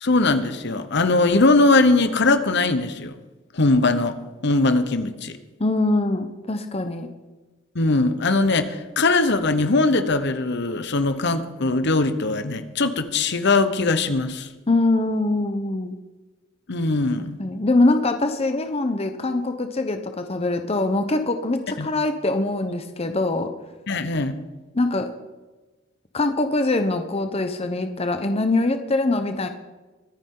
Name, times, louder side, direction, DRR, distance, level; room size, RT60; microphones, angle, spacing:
voice 1, 0.0-3.1 3.5-5.3 7.7-14.5 16.7-17.4 21.8-21.9 23.9-24.4, left 3 dB, 60° left, 11 dB, 1.0 m, -20 dB
voice 2, 5.6-7.1 14.7-16.0 17.4-23.5 24.7-25.1 26.1-29.5, left 2 dB, 30° left, 8 dB, 0.8 m, -23 dB
23.5 x 9.8 x 3.9 m, 1.2 s
head